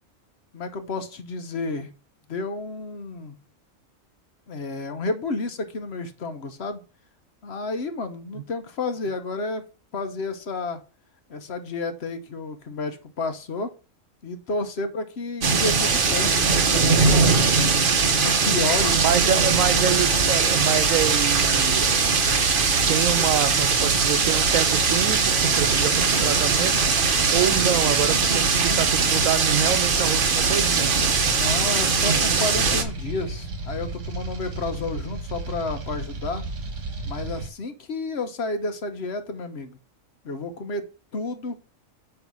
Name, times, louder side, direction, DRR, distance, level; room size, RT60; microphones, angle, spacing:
voice 1, 0.5-1.9 2.3-3.4 4.5-6.8 7.4-9.6 9.9-10.8 11.3-13.7 14.2-17.4 18.2-19.0 23.1-23.4 31.3-36.4 37.0-39.8 40.2-40.8 41.1-41.6, left 3 dB, 55° left, 1.1 m, -31 dB
sound 1, 15.4-32.8, right 5 dB, 45° right, 1.1 m, -21 dB
sound 2, 18.8-37.5, right 2 dB, 65° right, 1.6 m, -33 dB
voice 2, 18.9-22.1 22.9-26.8 27.3-30.9, right 9 dB, 85° right, 1.2 m, -26 dB
9.2 x 3.3 x 6.1 m
omnidirectional pair, 1.4 m